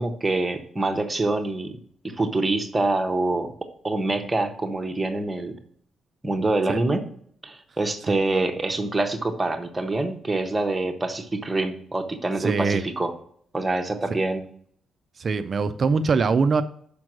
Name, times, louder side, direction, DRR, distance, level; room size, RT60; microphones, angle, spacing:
voice 1, 0.0-1.8 2.0-5.6 6.2-7.0 7.4-13.1 13.5-14.4, right 2 dB, 15° right, 5 dB, 0.8 m, -25 dB
voice 2, 12.4-12.8 15.2-16.6, right 4 dB, 35° right, 10 dB, 0.3 m, -22 dB
6.1 x 5.2 x 6.1 m, 0.62 s
cardioid pair, 175°, 0 cm